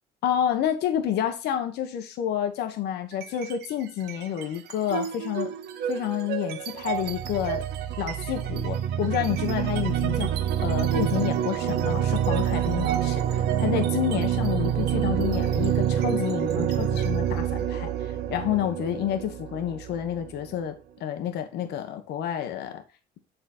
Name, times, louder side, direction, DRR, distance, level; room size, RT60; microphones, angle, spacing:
voice 1, 0.2-5.5 5.9-7.6 8.0-20.7 21.0-22.8, left 10 dB, 80° left, 1.1 m, -29 dB
sound 1, 3.1-3.7 4.0-20.6, right 10 dB, 75° right, 0.8 m, -27 dB
7.9 x 4.0 x 4.2 m
cardioid pair, 110°, 17 cm